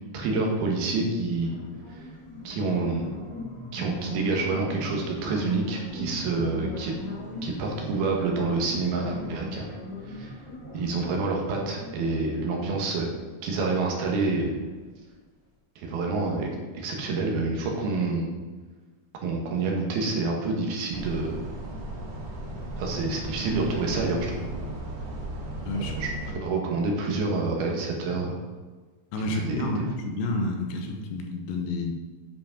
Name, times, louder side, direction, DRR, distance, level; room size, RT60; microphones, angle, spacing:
voice 1, 0.1-1.5 1.9-2.0 2.4-3.1 3.7-6.9 7.4-9.7 10.1-10.3 10.7-13.1 13.4-14.6 15.8-16.5 16.7-18.3 19.2-21.4 22.8-24.4 25.7-28.4 29.3-29.7, right 3 dB, 75° right, 0 dB, 3.3 m, -27 dB
sound 1, 1.3-15.1, left 1 dB, 20° left, 0.9 m, -41 dB
sound 2, 20.9-26.3, right 1 dB, 60° right, 3.0 m, -36 dB
voice 2, 29.1-31.9, left 2 dB, 75° left, 3 dB, 2.6 m, -29 dB
10.5 x 5.1 x 5.1 m, 1.3 s
omnidirectional pair, 4.5 m